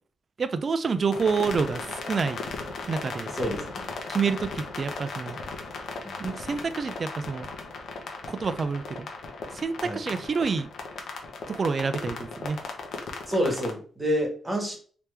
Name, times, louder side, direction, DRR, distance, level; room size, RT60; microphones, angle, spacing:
voice 1, 0.4-1.8 2.1-2.4 2.9-3.3 4.1-5.4 6.2-7.5 8.3-9.1 9.5-10.7 11.5-12.6, right 5 dB, 40° right, 11 dB, 0.4 m, -28 dB
sound 1, 1.1-13.7, left 4 dB, 70° left, 0.8 m, -37 dB
voice 2, 3.3-3.9 6.0-6.2 9.8-10.0 13.3-14.8, equal, 15° right, 1 dB, 1.2 m, -28 dB
3.3 x 2.9 x 3.3 m, 0.44 s
cardioid pair, 115°, 0 cm